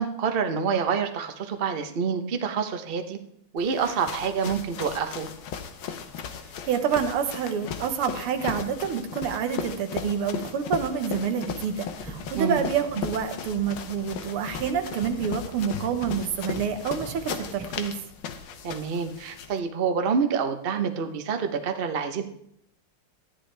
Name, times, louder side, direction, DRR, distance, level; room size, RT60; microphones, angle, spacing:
voice 1, 0.0-3.2 3.5-5.3 12.4-12.6 18.6-22.2, right 6 dB, 65° right, 7 dB, 0.5 m, -27 dB
sound 1, 3.6-19.6, left 7 dB, 70° left, 1.7 m, -37 dB
voice 2, 6.7-17.9, right 7 dB, 85° right, 7 dB, 1.9 m, -28 dB
sound 2, 11.8-18.0, right 1 dB, ahead, 2.3 m, -44 dB
13.0 x 10.0 x 3.4 m, 0.71 s
omnidirectional pair, 2.4 m